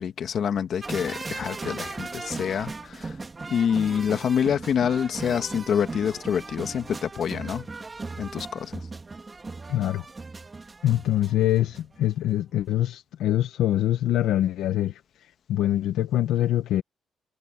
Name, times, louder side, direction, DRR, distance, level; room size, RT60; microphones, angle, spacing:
voice 1, 0.0-3.2 3.5-7.7 8.2-8.8, left 8 dB, 60° left, 1.8 m, -26 dB
sound 1, 0.8-12.0 12.3-12.4, right 3 dB, 25° right, 2.6 m, -37 dB
voice 2, 9.7-10.0 10.8-15.0 15.5-16.8, left 13 dB, 85° left, 1.3 m, -24 dB
cardioid pair, 90°, 0 cm